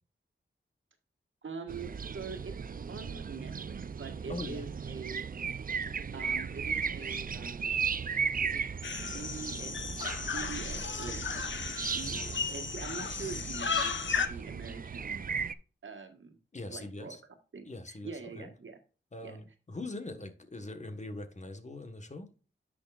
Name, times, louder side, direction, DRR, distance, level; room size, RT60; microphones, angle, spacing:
voice 1, 1.4-2.5 2.9-5.3 6.1-7.8 8.4-8.6 8.9-9.7 10.2-15.3 15.8-16.4 16.7-17.2 17.5-18.8 19.2-19.4, right 5 dB, 75° right, 5 dB, 1.5 m, -44 dB
sound 1, 1.7-15.5, right 6 dB, 45° right, 0.5 m, -36 dB
voice 2, 4.3-4.7 16.5-17.2 17.6-18.5 19.1-22.3, left 2 dB, 35° left, 8 dB, 1.4 m, -42 dB
sound 2, 8.8-14.3, left 5 dB, 65° left, 1.0 m, -35 dB
10.0 x 6.3 x 2.5 m, 0.35 s
wide cardioid pair, 95°, 20 cm